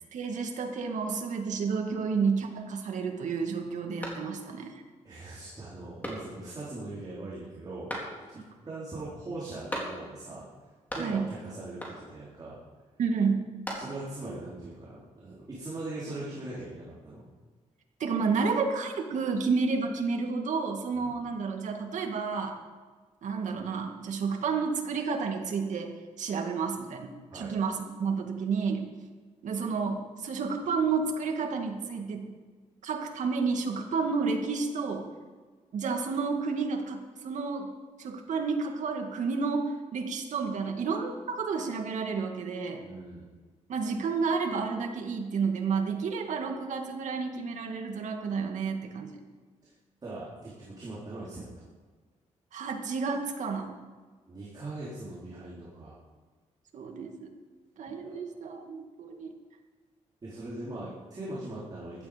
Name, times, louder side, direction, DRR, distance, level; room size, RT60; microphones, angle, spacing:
voice 1, 0.1-4.7 11.0-11.3 13.0-13.5 18.0-22.6 23.2-28.9 29.4-32.3 32.8-35.1 35.7-37.7 38.0-42.8 43.7-49.1 52.5-53.7 56.7-57.3 57.8-59.3, right 5 dB, 75° right, 3 dB, 2.1 m, -31 dB
sound 1, 4.0-4.7 5.1-5.2 6.0-6.6 7.9-8.5 9.7-10.3 10.6-11.4 11.8-12.3 13.3-14.2, equal, 15° left, 3.8 m, -39 dB
voice 2, 5.0-7.9 8.3-10.4 10.9-12.6 13.7-17.2 20.9-21.1 27.3-27.5 42.8-43.3 49.6-49.7 50.0-51.7 54.3-56.0 57.9-58.2 60.2-62.1, right 2 dB, 30° right, -8 dB, 4.0 m, -40 dB
16.0 x 12.5 x 5.2 m, 1.4 s
cardioid pair, 125°, 13 cm